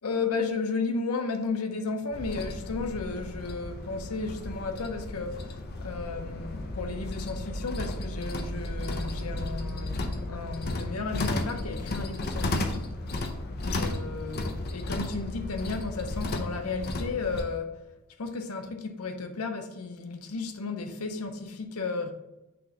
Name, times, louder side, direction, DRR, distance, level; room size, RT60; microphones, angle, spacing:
voice 1, 0.0-12.9 13.7-17.8 18.2-22.1, left 4 dB, 85° left, 0.7 m, -34 dB
bus rattly TV frame metal plastic squeak, 2.1-17.4, left 2 dB, 45° left, 0.7 m, -34 dB
6.1 x 3.1 x 4.9 m
head